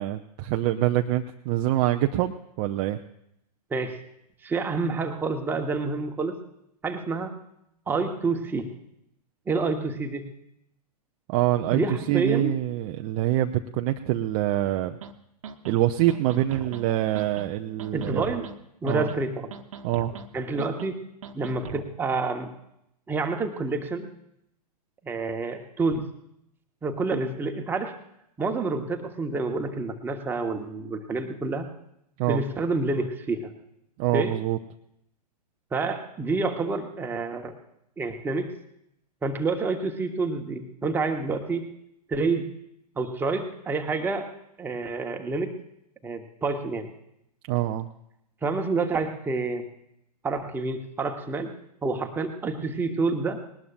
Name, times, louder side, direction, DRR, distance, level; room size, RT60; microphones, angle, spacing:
voice 1, 0.0-3.0 11.3-11.8 12.1-15.0 15.6-18.3 18.8-19.1 19.8-20.1 32.2-32.4 34.0-34.6 47.5-47.9, right 14 dB, 25° right, 5 dB, 0.5 m, -25 dB
voice 2, 4.4-6.4 6.8-7.4 7.9-8.7 9.5-10.3 11.7-12.5 17.9-18.5 18.8-19.5 20.3-21.0 21.3-22.5 23.1-24.1 25.0-26.1 26.8-27.9 28.4-31.7 32.3-33.5 34.1-34.3 35.7-37.5 38.0-38.5 39.2-41.7 42.1-42.5 43.0-44.3 44.6-45.6 46.0-46.9 48.4-49.6 50.2-51.5 51.8-53.4, right 3 dB, 10° right, 4 dB, 1.2 m, -28 dB
sound 1, 15.0-15.1 15.4-15.8 16.1-16.8 17.1-17.5 17.8-18.5 18.9-19.2 19.5-20.3 20.6-20.9 21.2-21.9, right 7 dB, 50° right, 1.1 m, -40 dB
20.0 x 19.0 x 2.5 m, 0.78 s
figure-of-eight pair, 110°, 21 cm